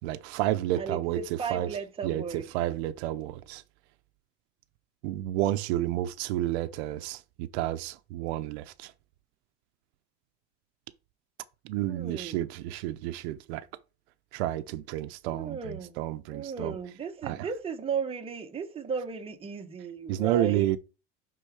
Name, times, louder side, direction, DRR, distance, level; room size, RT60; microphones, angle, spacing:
voice 1, 0.0-1.7 2.0-3.6 5.0-8.9 11.6-13.7 14.3-16.8 17.2-17.5 20.1-20.8, right 14 dB, 80° right, 0.7 m, -30 dB
voice 2, 0.8-2.4 11.9-12.4 15.3-16.0 16.3-20.7, right 6 dB, 20° right, 1.0 m, -35 dB
10.0 x 3.9 x 4.7 m
cardioid pair, 140°, 32 cm